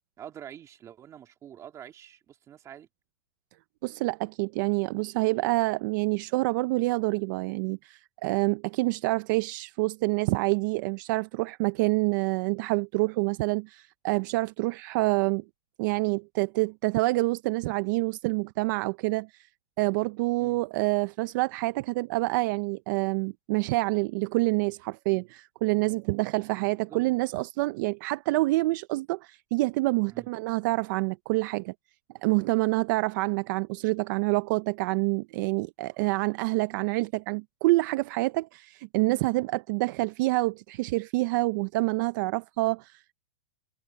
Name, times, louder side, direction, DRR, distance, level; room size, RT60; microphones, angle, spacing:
voice 1, 0.2-2.9 20.4-20.6 26.9-27.0 30.1-30.3, right 10 dB, 20° right, 2.7 m, -46 dB
voice 2, 3.8-15.4 15.8-19.5 19.8-31.7 32.2-43.1, right 23 dB, 45° right, 0.6 m, -27 dB
supercardioid pair, 155°, 14 cm